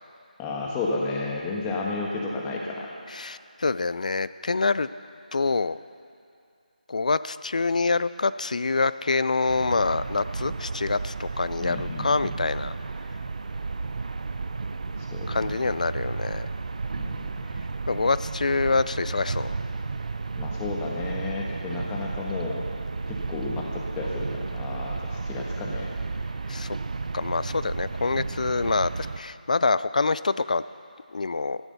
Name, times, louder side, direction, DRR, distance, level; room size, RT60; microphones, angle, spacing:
voice 1, 0.4-2.9 11.6-12.3 15.0-15.6 17.0-17.3 20.3-22.6 23.1-25.9, left 3 dB, 10° left, -2 dB, 1.4 m, -32 dB
voice 2, 3.1-4.9 5.3-5.8 6.9-12.7 15.3-16.5 17.9-19.6 26.5-26.8 27.1-30.6 31.1-31.6, left 3 dB, 55° left, 15 dB, 0.4 m, -26 dB
sound 1, 9.5-29.2, right 3 dB, 50° right, 0.7 m, -33 dB
14.5 x 12.5 x 6.7 m, 2.4 s
figure-of-eight pair, 165°, 5 cm